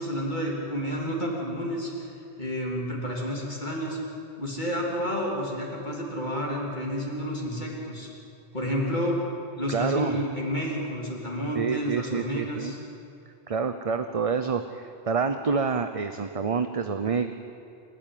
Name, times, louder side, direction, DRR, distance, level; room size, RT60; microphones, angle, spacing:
voice 1, 0.0-2.1 2.4-4.0 4.4-8.1 8.5-9.2 9.6-12.8, equal, 45° left, -2 dB, 3.4 m, -30 dB
voice 2, 9.7-10.2 11.6-12.7 13.5-17.3, right 5 dB, 35° right, 9 dB, 0.8 m, -27 dB
28.0 x 13.5 x 9.3 m, 2.7 s
omnidirectional pair, 1.1 m